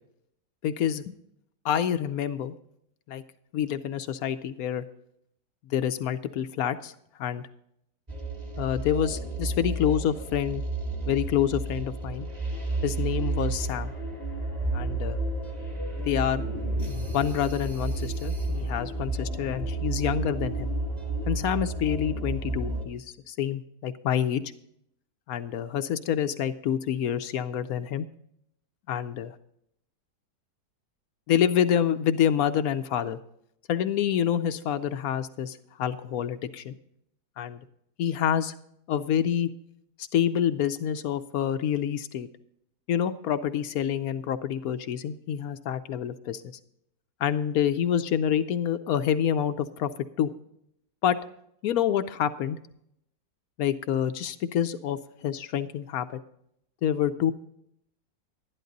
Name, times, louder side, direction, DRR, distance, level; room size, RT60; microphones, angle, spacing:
voice 1, 0.6-1.0 1.6-2.5 3.1-3.2 3.5-4.8 5.7-6.9 7.2-7.5 8.6-10.6 11.1-12.3 12.8-13.9 14.7-15.2 16.0-16.4 17.1-20.7 21.3-24.4 25.3-28.0 28.9-29.4 31.3-33.2 33.7-36.8 37.4-37.6 38.0-38.5 38.9-39.5 40.1-42.3 42.9-46.4 47.2-49.9 50.2-50.3 51.0-51.2 51.6-52.6 53.6-56.2 56.8-57.3, left 9 dB, 70° left, 11 dB, 0.9 m, -27 dB
sound 1, 8.1-22.8, right 3 dB, 25° right, 1.5 m, -31 dB
sound 2, 12.5-21.2, left 5 dB, 40° left, 0.9 m, -45 dB
11.5 x 11.0 x 3.9 m, 0.73 s
omnidirectional pair, 2.0 m